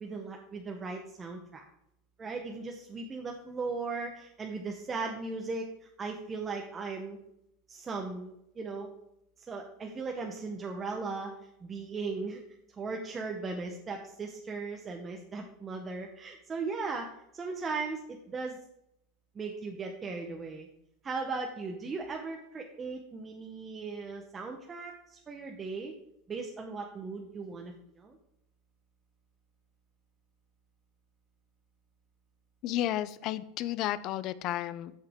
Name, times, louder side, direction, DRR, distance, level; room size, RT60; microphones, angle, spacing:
voice 1, 0.0-1.6 2.2-7.2 7.7-8.9 9.5-11.3 11.6-12.4 12.7-17.1 17.3-18.6 19.3-20.7 21.0-25.9 26.3-28.2, right 4 dB, 15° right, 2 dB, 0.8 m, -37 dB
voice 2, 32.6-34.9, left 13 dB, 40° left, 16 dB, 0.5 m, -32 dB
14.0 x 5.6 x 3.6 m, 0.80 s
supercardioid pair, 165°, 0 cm